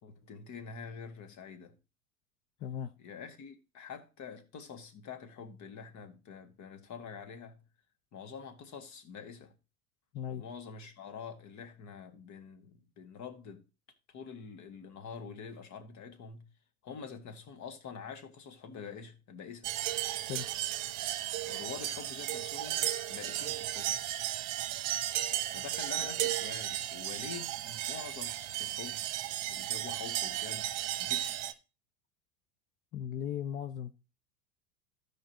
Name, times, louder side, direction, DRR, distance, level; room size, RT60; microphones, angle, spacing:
voice 1, 0.0-1.8 3.0-7.6 8.1-9.5 10.3-13.6 14.1-16.5 16.8-19.7 21.4-24.0 25.4-29.1 29.5-30.7 31.0-31.6, left 6 dB, 40° left, 1.8 m, -46 dB
voice 2, 2.6-2.9 10.1-10.4 20.3-20.5 32.9-33.9, left 9 dB, 20° left, 0.3 m, -37 dB
sound 1, 19.6-31.5, right 13 dB, 45° right, 1.0 m, -35 dB
15.0 x 5.1 x 2.9 m
figure-of-eight pair, 80°, 43 cm